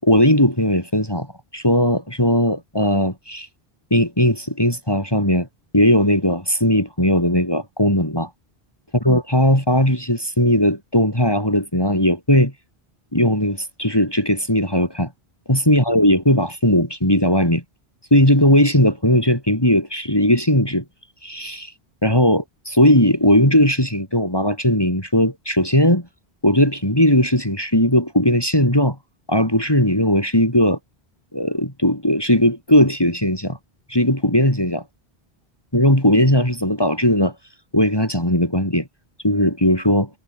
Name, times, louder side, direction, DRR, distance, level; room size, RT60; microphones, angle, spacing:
voice 1, 0.0-1.3 1.5-3.5 3.9-5.5 5.7-8.3 9.0-12.5 13.1-15.1 15.5-17.6 18.1-20.8 21.2-21.7 22.0-26.1 26.4-29.0 29.3-30.8 31.3-33.6 33.9-34.8 35.7-37.3 37.7-38.9 39.2-40.1, left 1 dB, 20° left, 6.1 m, -18 dB
omnidirectional pair, 1.1 m